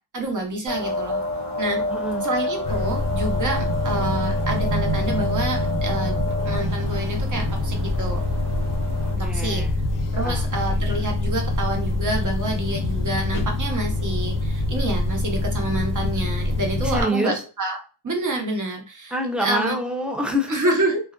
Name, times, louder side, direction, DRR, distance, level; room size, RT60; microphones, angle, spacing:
voice 1, 0.1-1.2 1.6-1.8 2.2-8.3 9.1-9.6 10.1-17.8 18.0-19.1 19.4-19.8 20.5-21.0, right 2 dB, 50° right, 1 dB, 0.9 m, -28 dB
sound 1, 0.7-9.1, left 1 dB, 85° right, 1.0 m, -28 dB
voice 2, 1.9-2.3 9.0-9.8 10.2-10.5 16.8-17.4 19.1-20.6, equal, 5° right, 3 dB, 0.5 m, -27 dB
sound 2, 2.6-17.0, left 2 dB, 55° left, 0.5 m, -25 dB
2.5 x 2.2 x 2.3 m, 0.34 s
wide cardioid pair, 85°, 41 cm